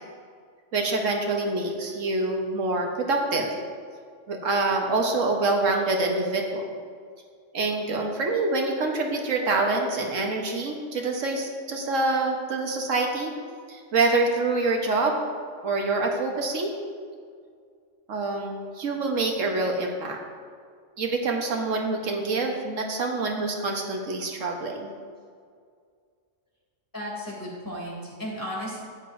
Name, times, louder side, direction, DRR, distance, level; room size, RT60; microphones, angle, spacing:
voice 1, 0.7-3.5 4.3-6.7 7.5-13.3 13.7-15.2 15.6-16.7 18.1-20.2 21.0-24.9, right 3 dB, 80° right, 2 dB, 1.4 m, -26 dB
voice 2, 26.9-28.8, equal, 15° left, -5 dB, 2.9 m, -34 dB
13.0 x 9.5 x 2.6 m, 2.1 s
omnidirectional pair, 1.3 m